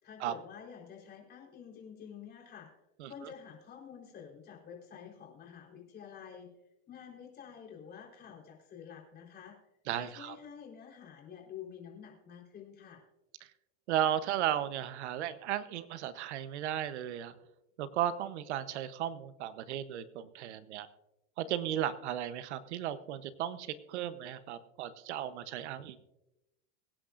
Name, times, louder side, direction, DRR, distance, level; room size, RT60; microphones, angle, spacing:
voice 1, 0.0-2.7 3.0-6.5 6.9-9.6 10.0-13.0, left 7 dB, 30° left, -1 dB, 4.0 m, -49 dB
voice 2, 9.9-10.4 13.9-17.3 17.8-20.9 21.4-26.0, right 11 dB, 85° right, 13 dB, 1.0 m, -35 dB
23.5 x 10.0 x 2.5 m, 0.96 s
supercardioid pair, 145°, 33 cm